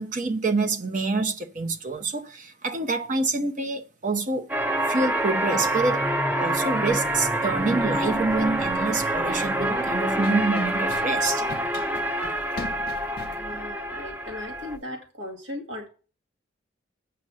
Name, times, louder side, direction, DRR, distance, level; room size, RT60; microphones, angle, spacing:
voice 1, 0.0-4.5 4.9-6.1 6.4-11.5, right 3 dB, 40° right, 0.9 m, -27 dB
sound 1, 4.5-14.8, right 1 dB, 10° right, 0.6 m, -26 dB
Run, 6.9-14.8, left 2 dB, 50° left, 0.6 m, -43 dB
voice 2, 13.3-15.9, left 1 dB, 80° right, 2.3 m, -37 dB
8.0 x 5.8 x 7.5 m
head